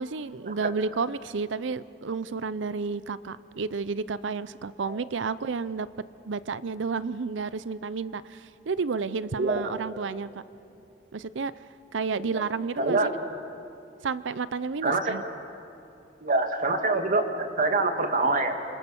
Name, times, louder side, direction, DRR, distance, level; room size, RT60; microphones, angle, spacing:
voice 1, 0.0-5.9 6.2-10.3 11.1-11.6 11.9-13.0 14.0-15.2, right 4 dB, 80° right, 16 dB, 0.6 m, -31 dB
voice 2, 9.4-9.7 12.3-12.4 12.8-13.2 14.8-15.2 16.2-18.6, right 2 dB, 50° right, 5 dB, 2.0 m, -25 dB
27.0 x 25.0 x 7.1 m, 2.7 s
head